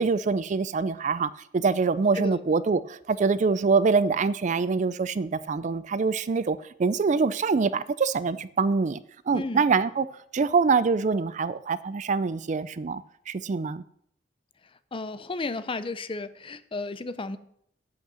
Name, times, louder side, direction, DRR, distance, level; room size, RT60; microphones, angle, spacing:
voice 1, 0.0-9.0 9.3-10.1 10.3-13.8, right 4 dB, 40° right, 0.4 m, -25 dB
voice 2, 9.3-9.7 14.9-17.4, left 3 dB, 30° left, 0.6 m, -33 dB
8.4 x 8.2 x 6.2 m
head